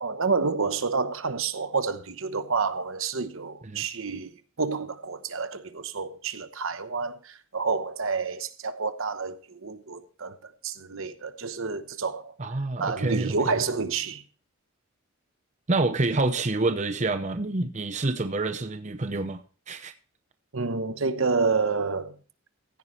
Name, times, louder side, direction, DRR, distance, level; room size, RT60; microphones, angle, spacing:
voice 1, 0.0-4.3 4.6-12.3 12.8-14.2 20.5-22.2, right 4 dB, 65° right, 0.9 m, -29 dB
voice 2, 12.4-13.6 15.7-19.9, right 2 dB, 35° right, 0.7 m, -28 dB
15.5 x 9.4 x 3.1 m
head